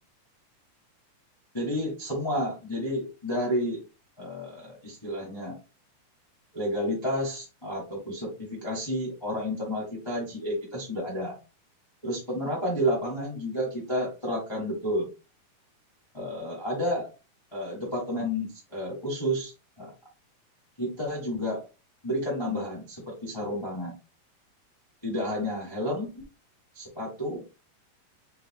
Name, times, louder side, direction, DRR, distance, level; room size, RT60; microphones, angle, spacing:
voice 1, 1.5-3.8 4.2-5.5 6.5-11.4 12.0-15.1 16.1-17.1 17.5-19.9 20.8-21.6 22.0-23.9 25.0-26.2 26.7-27.4, equal, 35° left, -4 dB, 0.4 m, -31 dB
6.7 x 3.4 x 2.3 m, 0.31 s
omnidirectional pair, 3.9 m